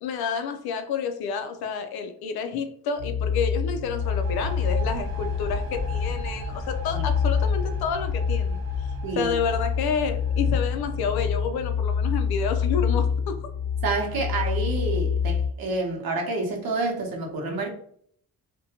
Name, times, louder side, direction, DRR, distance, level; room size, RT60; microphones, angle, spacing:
voice 1, 0.0-8.9 9.2-13.4, left 6 dB, 85° left, 6 dB, 0.5 m, -29 dB
sound 1, 3.0-15.5, left 6 dB, 20° left, 0.8 m, -27 dB
sound 2, 3.8-11.6, right 1 dB, 45° right, 0.6 m, -36 dB
voice 2, 9.0-9.3 13.8-17.7, right 3 dB, 70° right, 1 dB, 0.8 m, -28 dB
2.6 x 2.2 x 2.8 m, 0.62 s
cardioid pair, 135°, 37 cm